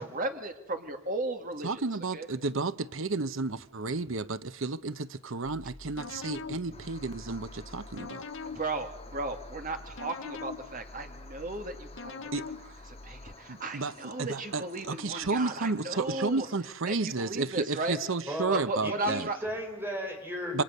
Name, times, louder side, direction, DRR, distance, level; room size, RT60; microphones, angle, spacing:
voice 1, 0.0-1.8 2.1-2.3 6.7-6.8 8.4-12.3 13.0-16.5 16.9-18.0 18.5-19.4, right 2 dB, 40° right, 2.5 m, -35 dB
voice 2, 1.6-8.2 12.3-12.5 13.5-19.3 20.5-20.6, right 3 dB, 65° right, 0.9 m, -32 dB
sound 1, 5.4-13.3, left 4 dB, 60° left, 1.2 m, -44 dB
sound 2, 6.7-16.6, left 3 dB, 30° left, 2.9 m, -53 dB
voice 3, 18.3-20.6, equal, 10° right, 4.8 m, -36 dB
28.0 x 25.0 x 6.7 m
head